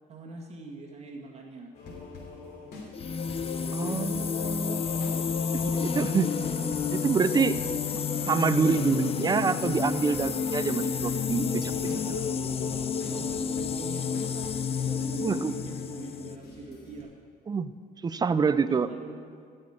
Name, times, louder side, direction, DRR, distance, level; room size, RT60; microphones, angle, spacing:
voice 1, 0.1-1.7 11.9-12.2 12.6-12.8 13.1-14.5 14.8-17.1 18.6-19.3, right 3 dB, 40° right, 1 dB, 2.1 m, -43 dB
sound 1, 1.7-17.0, left 3 dB, 75° left, 3.0 m, -41 dB
sound 2, 2.9-16.4, left 6 dB, 35° left, 0.6 m, -30 dB
voice 2, 3.7-4.8 5.5-6.3 6.9-7.6 8.3-12.2 15.2-15.6 17.5-17.7 18.0-18.9, right 5 dB, 25° right, 13 dB, 0.5 m, -27 dB
14.5 x 6.4 x 8.8 m, 2.2 s
cardioid pair, 110°, 17 cm